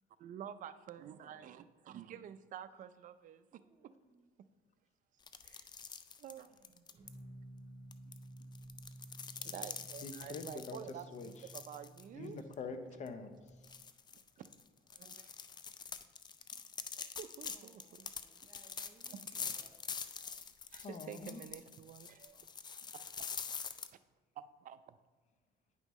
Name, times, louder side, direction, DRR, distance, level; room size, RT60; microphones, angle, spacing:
voice 1, 0.2-3.9 5.4-5.7 6.2-7.1 9.4-12.4 14.4-14.5 14.9-15.3 17.0-18.1 19.1-19.2 20.3-20.4 20.7-22.4 24.4-25.0, right 9 dB, 50° right, 13 dB, 0.4 m, -50 dB
voice 2, 1.0-1.7 3.5-4.3 17.4-19.8 22.3-22.5, right 3 dB, 15° right, 4 dB, 0.8 m, -66 dB
sound 1, 5.2-7.1 7.9-12.0 12.4-12.5 13.1-13.2 13.6-23.9, left 6 dB, 25° left, 0.3 m, -45 dB
sound 2, 7.0-13.8, right 1 dB, 35° right, 1.7 m, -54 dB
voice 3, 10.0-10.8 11.1-11.5 12.1-13.7 20.8-21.4, left 4 dB, 45° left, 8 dB, 0.7 m, -45 dB
9.6 x 5.4 x 3.1 m, 1.3 s
cardioid pair, 110°, 17 cm